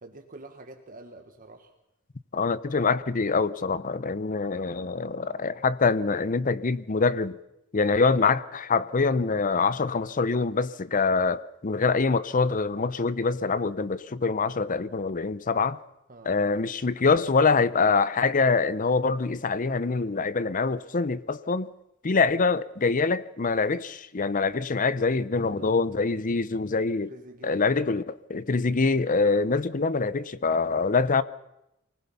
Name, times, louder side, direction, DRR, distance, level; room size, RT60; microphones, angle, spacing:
voice 1, 0.0-1.7 16.1-16.4 25.3-25.8 27.1-27.7 30.7-31.1, right 1 dB, 45° right, 1.4 m, -47 dB
voice 2, 2.3-7.4 7.7-15.8 16.3-21.7 22.0-27.1 27.4-31.2, left 4 dB, 40° left, 0.7 m, -25 dB
24.5 x 19.5 x 5.8 m
head